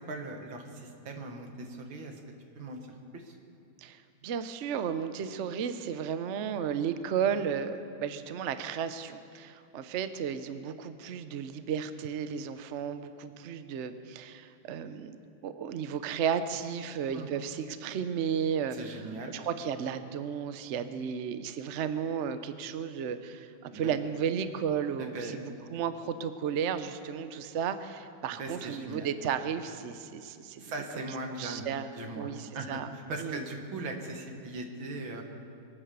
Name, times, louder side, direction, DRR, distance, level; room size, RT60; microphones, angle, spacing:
voice 1, 0.1-2.2 2.6-3.4 17.1-17.3 18.7-19.3 23.7-23.9 25.0-25.4 28.3-29.1 30.6-35.2, right 2 dB, 85° right, 4 dB, 2.3 m, -39 dB
voice 2, 3.8-15.2 15.4-18.8 19.3-25.4 25.7-30.6 31.4-32.9 33.2-33.4, right 7 dB, 65° right, 10 dB, 0.7 m, -33 dB
23.5 x 9.0 x 6.8 m, 2.5 s
omnidirectional pair, 2.1 m